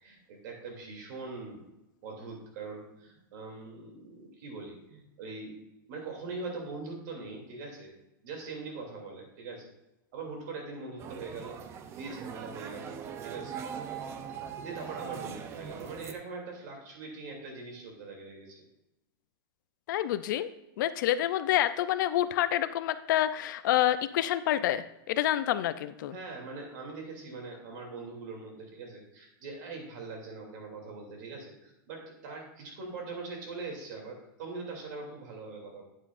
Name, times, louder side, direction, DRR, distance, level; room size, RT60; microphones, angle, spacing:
voice 1, 0.0-1.7 2.0-5.6 5.9-7.9 8.2-9.7 10.1-11.6 11.9-13.9 14.6-18.6 26.1-35.8, right 3 dB, 55° right, 1 dB, 2.8 m, -42 dB
sound 1, 11.0-16.1, right 7 dB, 20° right, 0.5 m, -41 dB
voice 2, 19.9-20.5 20.8-26.1, left 12 dB, 60° left, 13 dB, 0.5 m, -28 dB
9.3 x 8.3 x 2.5 m, 0.90 s
supercardioid pair, 160°, 12 cm